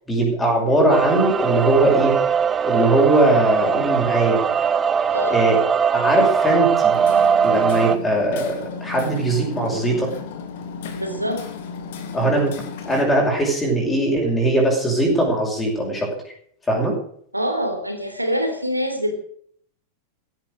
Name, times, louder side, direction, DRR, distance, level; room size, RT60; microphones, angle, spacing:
voice 1, 0.1-2.2 2.6-4.4 5.3-5.6 5.9-6.9 7.4-10.1 12.1-12.5 12.9-16.1 16.7-17.0, right 1 dB, 10° left, -1 dB, 6.0 m, -20 dB
sound 1, 0.9-8.0, right 7 dB, 20° right, 0.9 m, -20 dB
voice 2, 5.1-5.5 10.9-11.4 17.3-19.1, equal, 85° right, 6 dB, 3.5 m, -25 dB
Hammer, 6.9-13.0, left 6 dB, 55° left, 2.8 m, -34 dB
16.0 x 11.0 x 6.5 m, 0.62 s
figure-of-eight pair, 90°, 0 cm